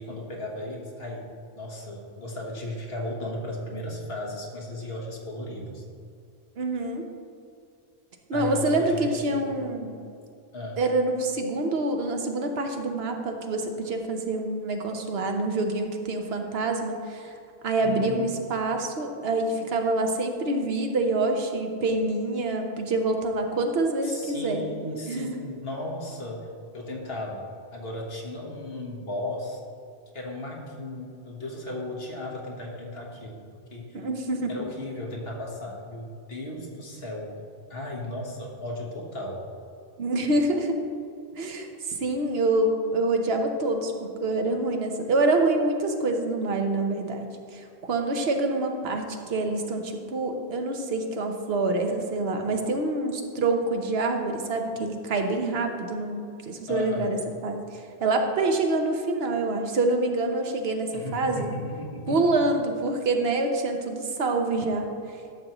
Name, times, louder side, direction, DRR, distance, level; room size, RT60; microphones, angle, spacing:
voice 1, 0.0-5.8 8.3-9.6 10.5-10.8 17.8-18.4 24.0-27.5 27.7-29.6 30.1-33.4 33.7-34.0 34.5-39.4 56.7-57.1 60.9-62.3, left 1 dB, 75° left, -1 dB, 1.5 m, -35 dB
voice 2, 6.6-7.0 8.3-10.0 10.8-17.3 17.6-25.3 33.9-34.5 40.0-40.8 41.4-57.2 57.4-61.5 62.1-64.9, right 2 dB, 75° right, 4 dB, 1.1 m, -26 dB
11.0 x 6.8 x 3.0 m, 2.4 s
omnidirectional pair, 1.0 m